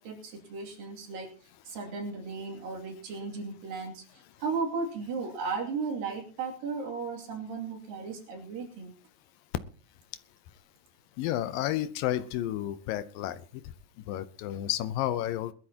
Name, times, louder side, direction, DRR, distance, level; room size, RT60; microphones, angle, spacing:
voice 1, 0.0-8.9, right 4 dB, 80° right, 1 dB, 4.4 m, -35 dB
voice 2, 11.2-13.4 14.1-15.5, left 13 dB, 90° left, 12 dB, 2.5 m, -31 dB
21.5 x 12.0 x 2.9 m, 0.39 s
omnidirectional pair, 3.9 m